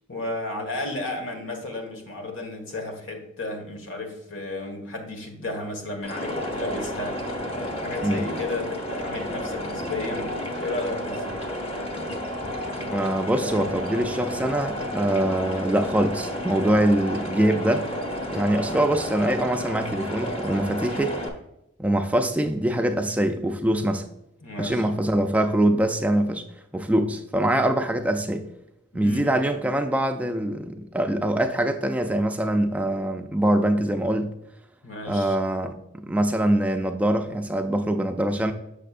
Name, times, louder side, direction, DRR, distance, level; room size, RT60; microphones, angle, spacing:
voice 1, 0.1-11.2 24.4-24.9 28.9-29.4 34.8-35.3, left 2 dB, 90° left, 1.5 m, -33 dB
sound 1, 6.0-21.3, equal, 30° left, 0.9 m, -31 dB
voice 2, 12.9-17.9 18.3-21.2 21.8-24.0 24.6-26.4 26.7-28.5 28.9-34.3 35.1-35.7 36.0-38.5, right 1 dB, 5° right, 0.3 m, -23 dB
6.6 x 6.5 x 2.5 m
head